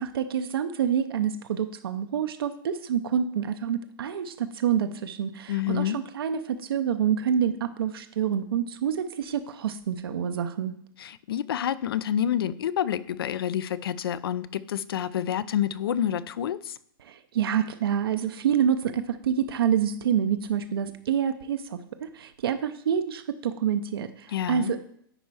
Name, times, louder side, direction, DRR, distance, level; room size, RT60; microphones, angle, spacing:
voice 1, 0.0-10.7 17.0-24.8, right 8 dB, 80° right, 8 dB, 0.7 m, -27 dB
voice 2, 5.5-6.0 11.0-16.7 24.3-24.8, left 10 dB, 80° left, 17 dB, 0.5 m, -28 dB
10.0 x 4.3 x 4.8 m, 0.66 s
hypercardioid pair, 155°, 12 cm